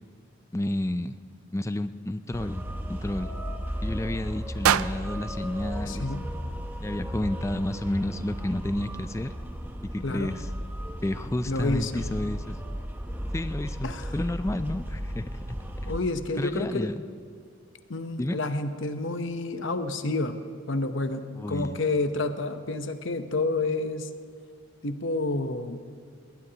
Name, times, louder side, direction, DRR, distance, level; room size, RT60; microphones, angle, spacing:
voice 1, 0.5-1.2 1.5-3.3 3.8-6.1 6.8-9.3 9.8-10.5 11.0-12.6 13.3-15.4 15.8-15.9 16.4-17.0 18.2-18.4 21.4-21.8, left 1 dB, 15° left, 11 dB, 0.3 m, -31 dB
sound 1, 2.3-16.0, equal, 10° right, 0.8 m, -35 dB
sound 2, 4.6-6.8, right 10 dB, 80° right, 0.3 m, -29 dB
voice 2, 5.8-6.3 10.0-10.4 11.5-12.0 13.8-14.1 15.9-16.9 17.9-20.4 20.7-24.1 24.8-25.8, left 2 dB, 60° left, 8 dB, 0.9 m, -29 dB
20.0 x 19.0 x 2.9 m, 2.2 s
head